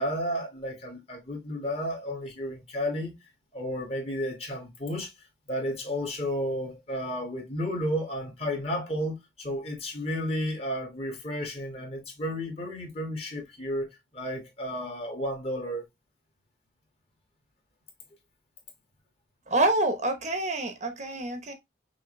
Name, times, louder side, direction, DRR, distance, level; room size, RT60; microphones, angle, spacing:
voice 1, 0.0-3.1 3.5-5.1 5.5-13.9 14.1-15.8, equal, 30° left, 1.6 m, -32 dB
voice 2, 19.5-21.5, right 2 dB, 35° right, 0.8 m, -27 dB
5.9 x 2.8 x 3.1 m
head